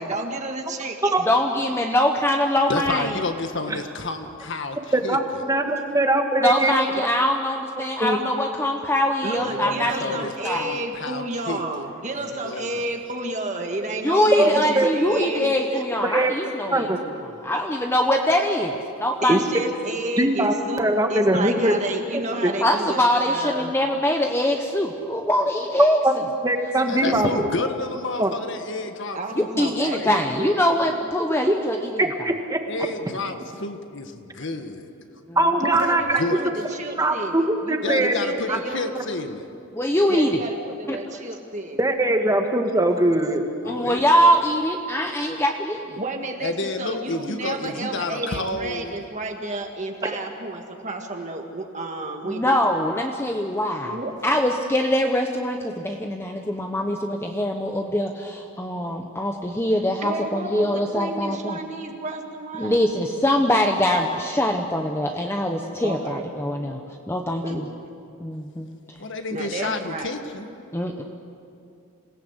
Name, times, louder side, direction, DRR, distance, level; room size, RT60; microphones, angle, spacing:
voice 1, 0.0-1.1 9.2-15.9 19.2-23.8 27.0-27.4 29.1-31.0 35.6-39.0 40.1-41.8 46.0-52.6 53.8-54.1 60.0-62.8 65.8-66.3 67.4-67.8 69.3-70.1, right 2 dB, 35° right, 3 dB, 1.7 m, -31 dB
voice 2, 1.3-3.2 6.4-10.1 10.4-10.7 14.0-16.9 17.4-19.4 22.6-26.0 29.4-32.0 35.3-35.4 39.7-40.3 40.9-41.0 43.7-46.0 52.2-54.0 54.2-61.6 62.6-66.8 67.1-67.6 68.2-68.7 70.7-71.0, left 1 dB, 10° left, 3 dB, 1.0 m, -23 dB
voice 3, 2.7-5.2 9.5-11.9 12.2-12.8 26.9-30.1 32.7-34.9 36.2-36.5 37.8-39.5 43.6-44.0 46.4-49.0 69.0-70.5, left 3 dB, 55° left, 7 dB, 1.6 m, -30 dB
voice 4, 4.9-6.7 8.0-8.2 14.4-14.5 14.7-14.9 15.2-15.3 16.0-16.3 16.7-17.0 19.3-19.4 20.2-21.7 22.4-22.5 26.0-26.1 26.4-27.4 28.2-28.3 31.5-31.6 32.0-32.6 35.4-36.0 37.0-38.2 38.5-38.6 41.8-43.4, right 1 dB, 15° right, 4 dB, 1.6 m, -21 dB
27.0 x 17.5 x 8.1 m, 2.5 s
head